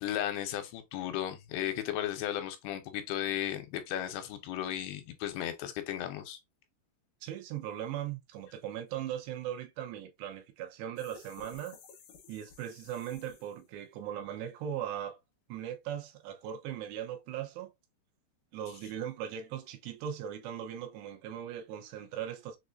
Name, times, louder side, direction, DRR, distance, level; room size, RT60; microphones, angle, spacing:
voice 1, 0.0-6.4, left 11 dB, 85° left, 2.6 m, -35 dB
voice 2, 7.2-11.8 12.3-15.2 15.5-17.7 18.5-22.6, right 10 dB, 85° right, 2.9 m, -39 dB
sound 1, 11.0-13.8, left 6 dB, 70° left, 2.3 m, -55 dB
6.5 x 2.5 x 2.4 m
omnidirectional pair, 4.8 m